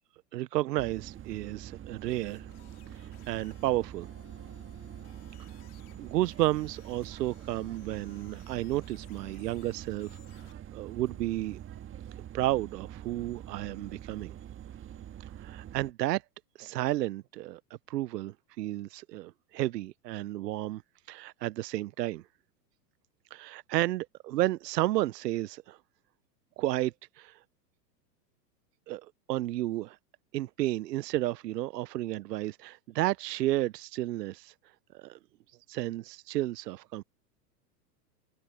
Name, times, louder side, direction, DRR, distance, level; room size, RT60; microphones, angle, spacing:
voice 1, 0.3-2.5 2.9-4.1 6.0-10.2 10.7-11.6 12.3-14.3 15.2-16.2 16.6-17.6 17.9-20.8 21.1-22.2 23.3-25.8 26.6-27.4 28.9-29.0 29.3-30.0 30.3-34.5 34.9-35.2 35.7-37.0, right 15 dB, 80° right, 0.8 m, -32 dB
sound 1, 0.8-15.9, right 11 dB, 25° right, 1.6 m, -45 dB
sound 2, 2.0-10.5, left 21 dB, 60° left, 3.9 m, -61 dB
hypercardioid pair, 120°, 49 cm